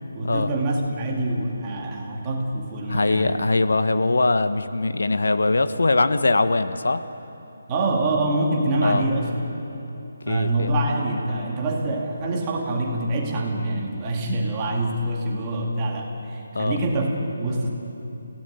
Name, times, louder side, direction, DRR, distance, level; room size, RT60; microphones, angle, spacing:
voice 1, 0.1-3.4 7.7-9.3 10.3-17.7, right 2 dB, 15° right, -1 dB, 2.1 m, -25 dB
voice 2, 2.9-7.0 8.8-9.0 10.3-10.7 16.5-16.8, left 2 dB, 80° left, 11 dB, 1.2 m, -21 dB
29.5 x 17.0 x 9.2 m, 3.0 s
hypercardioid pair, 180°, 0 cm